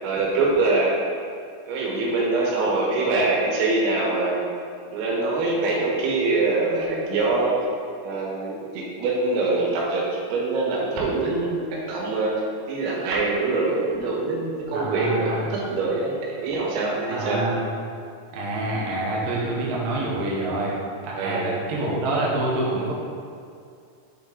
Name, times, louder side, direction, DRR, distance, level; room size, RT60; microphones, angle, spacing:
voice 1, 0.0-0.9 1.7-4.5 4.9-7.6 8.0-12.3 12.7-17.4 21.2-21.5, right 3 dB, 90° right, -4 dB, 4.1 m, -24 dB
voice 2, 14.7-15.6 17.1-17.7 18.3-20.7 21.0-22.9, right 2 dB, 70° right, -5 dB, 2.3 m, -26 dB
8.3 x 6.0 x 3.6 m, 2.4 s
omnidirectional pair, 5.8 m